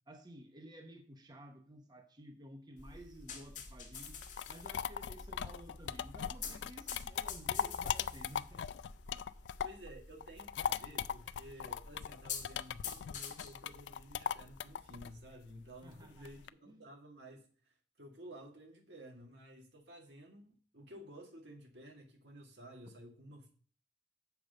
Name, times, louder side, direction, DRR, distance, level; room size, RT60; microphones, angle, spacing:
voice 1, 0.1-4.2 4.5-8.7 9.2-9.3 15.8-16.3 16.7-16.8, right 1 dB, 25° right, 0.8 m, -53 dB
sound 1, 2.8-15.2, left 5 dB, 45° left, 1.4 m, -49 dB
sound 2, 4.1-9.9 10.2-16.5, left 8 dB, 90° left, 0.3 m, -39 dB
voice 2, 9.6-23.5, right 1 dB, 75° right, 2.0 m, -53 dB
7.0 x 5.0 x 6.5 m
head